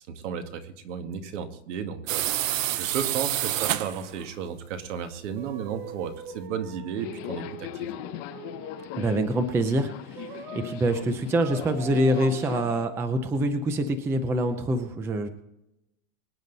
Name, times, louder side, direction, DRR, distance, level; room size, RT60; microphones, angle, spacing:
voice 1, 0.1-7.9, right 7 dB, 65° right, 7 dB, 2.0 m, -34 dB
sound 1, 2.1-4.2, right 13 dB, 80° right, 0.9 m, -27 dB
sound 2, 5.4-9.3 10.1-10.8 11.4-12.9, right 6 dB, 40° right, 2.3 m, -43 dB
Subway metro underground, 7.0-12.9, left 14 dB, 35° left, 0.7 m, -39 dB
voice 2, 9.0-15.3, right 1 dB, 5° right, 9 dB, 0.5 m, -25 dB
24.0 x 9.3 x 4.0 m, 0.86 s
supercardioid pair, 160°, 38 cm